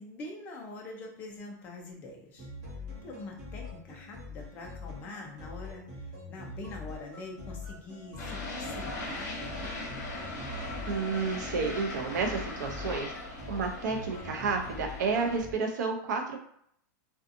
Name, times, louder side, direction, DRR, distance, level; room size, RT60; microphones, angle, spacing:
voice 1, 0.0-2.5 2.7-9.9, left 2 dB, 15° left, 0 dB, 0.4 m, -44 dB
sound 1, 2.4-15.5, left 3 dB, 25° right, 1.0 m, -44 dB
sound 2, 8.2-15.4, left 2 dB, 60° left, 0.9 m, -39 dB
voice 2, 10.9-16.4, right 4 dB, 65° right, 3 dB, 0.6 m, -31 dB
2.6 x 2.3 x 2.5 m, 0.67 s
supercardioid pair, 180°, 10 cm